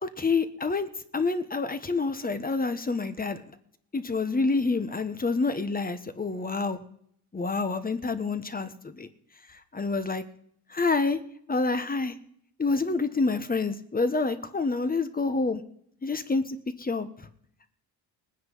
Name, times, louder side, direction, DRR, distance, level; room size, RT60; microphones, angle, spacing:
voice 1, 0.0-3.4 3.9-6.8 7.3-9.1 9.7-10.2 10.7-11.2 11.5-12.1 12.6-15.6 16.0-17.1, left 3 dB, 20° left, 10 dB, 1.3 m, -27 dB
19.5 x 9.7 x 5.6 m, 0.67 s
cardioid pair, 95°, 42 cm